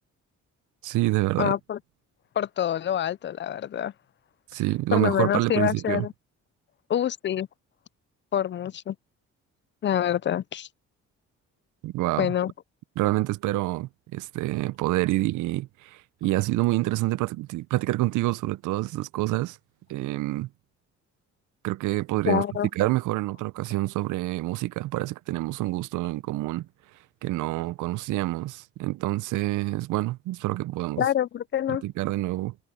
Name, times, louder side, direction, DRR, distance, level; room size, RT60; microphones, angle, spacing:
voice 1, 0.8-1.5 4.5-6.1 11.8-12.3 13.0-19.6 19.9-20.5 21.6-22.4 22.8-26.7 27.2-31.0 31.7-32.5, right 18 dB, 85° right, 0.6 m, -27 dB
voice 2, 1.4-1.8 2.4-3.9 4.9-6.1 6.9-7.5 8.3-9.0 9.8-10.7 12.2-12.5 22.3-22.7 31.0-31.8, left 10 dB, 40° left, 0.4 m, -26 dB
cardioid pair, 90°, 30 cm